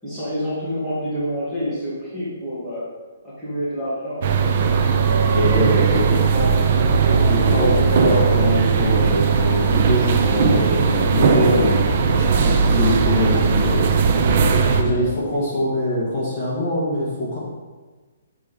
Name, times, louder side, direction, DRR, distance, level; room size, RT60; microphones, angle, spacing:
voice 1, 0.0-2.8 3.2-5.4 6.1-6.6 7.4-8.8 14.9-15.2 15.6-15.8, equal, ahead, -13 dB, 1.9 m, -28 dB
sound 1, 4.2-14.8, right 5 dB, 30° right, 0.6 m, -18 dB
voice 2, 5.3-6.2 7.1-13.9 14.7-17.4, left 1 dB, 25° left, -6 dB, 1.8 m, -23 dB
6.8 x 4.7 x 5.3 m, 1.3 s
hypercardioid pair, 180°, 0 cm